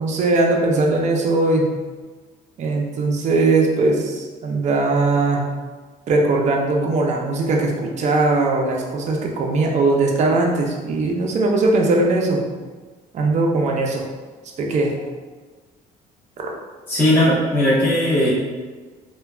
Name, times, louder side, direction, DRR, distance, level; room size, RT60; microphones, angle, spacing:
voice 1, 0.0-1.6 2.6-5.4 6.1-12.4 13.1-14.0 14.6-14.9 16.4-16.5, right 2 dB, 45° right, 0 dB, 0.5 m, -19 dB
voice 2, 16.9-18.3, left 1 dB, 10° left, -8 dB, 0.7 m, -17 dB
3.1 x 2.2 x 2.3 m, 1.4 s
cardioid pair, 110°, 17 cm